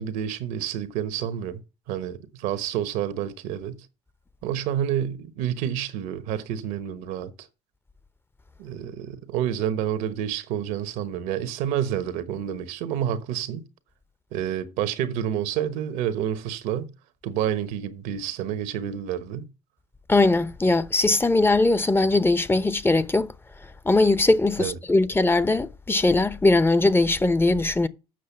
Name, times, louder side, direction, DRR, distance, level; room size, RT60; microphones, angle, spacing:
voice 1, 0.0-1.6 1.9-3.9 4.4-7.5 8.6-13.6 14.3-16.9 17.2-19.5 24.6-24.8, right 10 dB, 75° right, 1.1 m, -29 dB
voice 2, 20.1-23.3 23.8-27.9, left 2 dB, 15° left, 0.8 m, -20 dB
7.6 x 6.3 x 5.7 m
hypercardioid pair, 60°, 14 cm